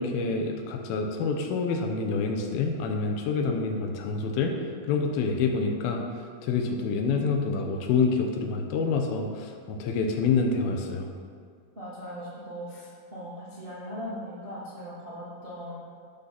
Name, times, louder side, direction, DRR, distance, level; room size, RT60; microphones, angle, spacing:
voice 1, 0.0-4.5 4.9-6.0 6.4-11.1, left 4 dB, 90° left, 3 dB, 2.6 m, -27 dB
voice 2, 11.7-15.7, equal, 30° right, -9 dB, 0.9 m, -39 dB
11.5 x 3.9 x 5.8 m, 2.1 s
omnidirectional pair, 4.3 m